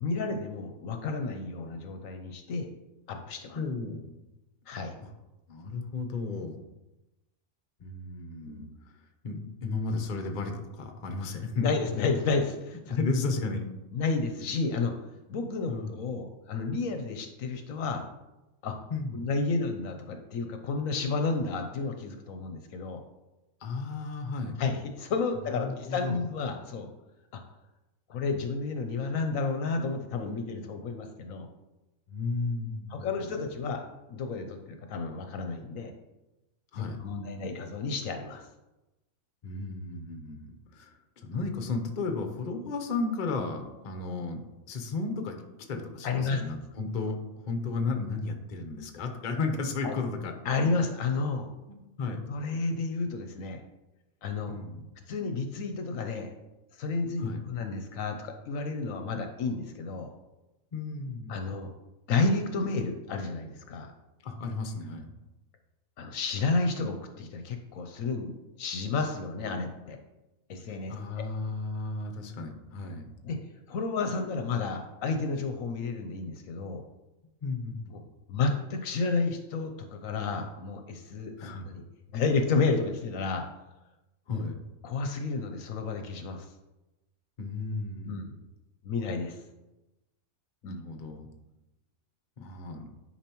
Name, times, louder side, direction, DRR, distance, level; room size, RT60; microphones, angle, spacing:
voice 1, 0.0-2.7 3.1-3.6 4.7-5.0 8.5-8.7 11.6-13.0 13.9-14.9 15.3-18.0 18.6-18.9 19.1-23.0 24.6-26.9 27.3-27.4 28.1-31.5 32.9-35.9 36.7-38.4 46.0-46.4 49.8-49.9 50.4-51.5 52.3-53.6 54.2-54.5 55.1-56.3 56.8-60.1 61.3-61.7 62.1-63.9 66.0-68.3 68.6-70.0 70.5-70.9 73.2-73.4 73.7-76.8 77.9-78.0 78.3-81.8 82.1-83.4 84.3-84.4 84.8-86.5 88.0-88.4 88.8-89.4 90.6-90.8, left 4 dB, 70° left, 6 dB, 1.0 m, -31 dB
voice 2, 3.6-4.1 5.0-5.1 5.5-6.6 7.8-9.0 9.2-11.7 12.9-13.6 15.7-16.0 18.9-19.3 23.6-24.6 25.5-26.2 32.1-33.4 36.7-37.0 39.4-45.4 45.7-47.2 47.4-50.3 50.6-50.7 51.7-52.3 54.5-54.9 57.2-57.4 60.7-61.4 64.2-65.1 70.9-73.1 77.4-77.9 81.4-81.6 84.3-84.6 87.4-88.3 90.6-91.3 92.4-92.9, left 3 dB, 40° left, 5 dB, 0.8 m, -34 dB
10.0 x 4.6 x 3.0 m, 1.0 s
omnidirectional pair, 1.5 m